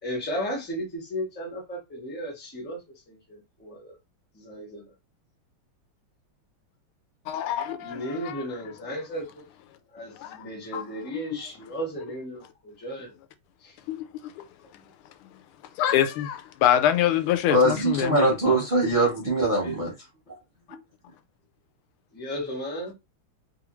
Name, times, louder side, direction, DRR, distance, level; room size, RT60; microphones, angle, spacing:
voice 1, 0.0-2.8 3.1-4.0 4.3-4.9 7.8-9.4 9.9-13.1 13.6-13.8 22.1-22.9, equal, 10° left, 0.4 m, -35 dB
voice 2, 7.3-8.4 10.2-10.4 10.7-10.8 11.1-11.2 13.9-14.1 15.8-18.6, left 11 dB, 85° left, 1.5 m, -25 dB
voice 3, 17.5-19.9 20.7-20.8, right 1 dB, 45° right, 0.6 m, -22 dB
3.4 x 2.4 x 3.0 m
omnidirectional pair, 2.3 m